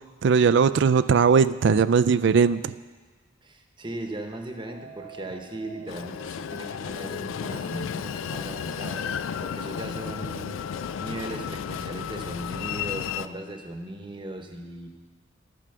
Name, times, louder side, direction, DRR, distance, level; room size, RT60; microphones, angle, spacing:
voice 1, 0.2-2.7, right 5 dB, 60° right, 16 dB, 0.3 m, -19 dB
voice 2, 3.4-14.9, right 1 dB, 25° right, 5 dB, 0.9 m, -38 dB
sound 1, 4.5-12.4, right 2 dB, 85° right, 2.0 m, -48 dB
Train, 5.9-13.3, left 8 dB, 85° left, 0.3 m, -33 dB
12.0 x 6.2 x 6.8 m, 1.4 s
head